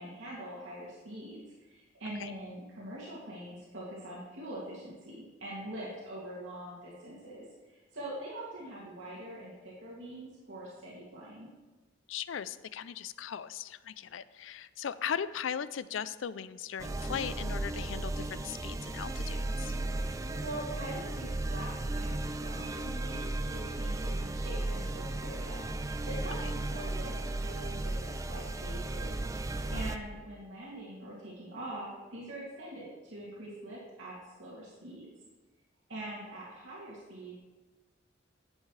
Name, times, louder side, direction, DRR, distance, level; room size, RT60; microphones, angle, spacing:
voice 1, 0.0-11.5 20.0-25.6 26.0-27.1 27.4-29.1 29.7-35.1 35.9-37.3, right 1 dB, 85° right, -7 dB, 2.6 m, -43 dB
voice 2, 12.1-19.7 29.7-29.9, left 8 dB, 85° left, 15 dB, 0.4 m, -38 dB
sound 1, 16.8-30.0, right 2 dB, 15° right, 0.3 m, -35 dB
11.5 x 8.2 x 3.3 m, 1.2 s
head